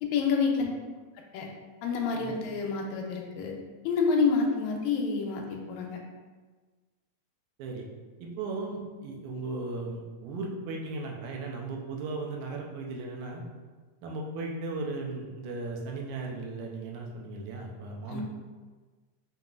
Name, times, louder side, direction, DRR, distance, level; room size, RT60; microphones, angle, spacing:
voice 1, 0.0-0.7 1.3-1.5 1.8-3.6 3.8-6.0 18.1-18.2, left 5 dB, 80° left, 1 dB, 1.8 m, -28 dB
voice 2, 8.2-13.4 14.0-18.2, right 3 dB, 80° right, 0 dB, 2.0 m, -36 dB
5.3 x 2.8 x 2.4 m, 1.4 s
omnidirectional pair, 3.5 m